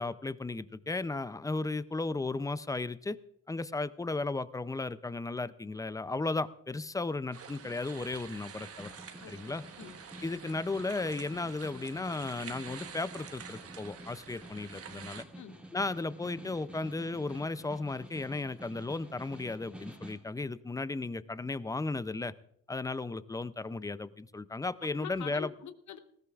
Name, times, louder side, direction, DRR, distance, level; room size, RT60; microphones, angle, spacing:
voice 1, 0.0-3.2 3.5-8.9 9.3-9.6 10.2-15.2 15.7-22.3 22.7-25.5, left 3 dB, 10° left, 15 dB, 0.4 m, -35 dB
sound 1, 7.3-15.2, right 7 dB, 50° right, 1.1 m, -48 dB
Snare drum, 8.6-20.3, right 1 dB, 5° right, 2.1 m, -50 dB
voice 2, 9.2-10.0 15.3-15.6 24.8-26.0, left 9 dB, 65° left, 10 dB, 1.0 m, -45 dB
19.5 x 17.0 x 2.4 m, 0.70 s
cardioid pair, 125°, 31 cm